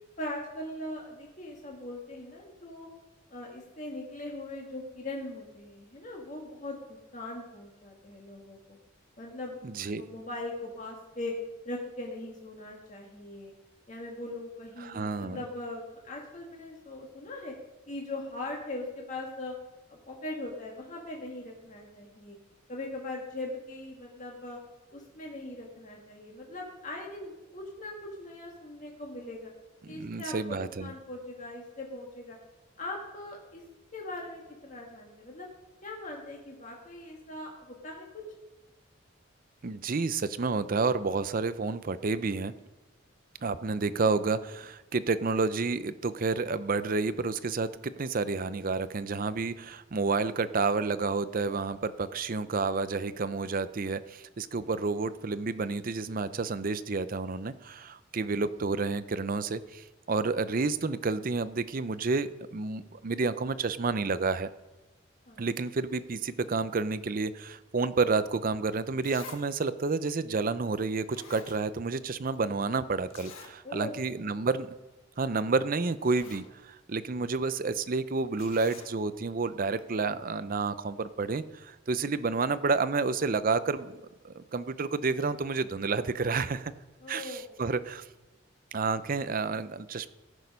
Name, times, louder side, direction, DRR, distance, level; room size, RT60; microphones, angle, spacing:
voice 1, 0.2-2.9 3.3-8.8 9.2-9.6 10.0-11.3 11.7-13.5 13.9-17.5 17.9-19.5 19.9-22.4 22.7-24.6 24.9-29.5 29.9-32.4 32.8-33.6 33.9-35.5 35.8-38.2 65.3-65.5 73.6-74.4 87.0-87.6, left 2 dB, 40° left, -1 dB, 1.6 m, -40 dB
voice 2, 9.6-10.0 14.8-15.4 29.8-30.9 39.6-42.5 43.4-64.5 65.4-74.7 75.2-86.7 87.1-88.0 88.7-90.1, right 4 dB, 45° right, 14 dB, 0.5 m, -30 dB
Zipper (clothing), 69.0-69.5 69.8-69.9 70.7-70.8 71.1-72.1 72.3-72.4 73.1-73.6 74.0-74.1 74.4-74.6 75.5-75.6 75.9-76.5 78.4-78.9 79.8-79.9, left 6 dB, 90° left, 1.5 m, -49 dB
18.0 x 6.4 x 5.3 m, 1.1 s
head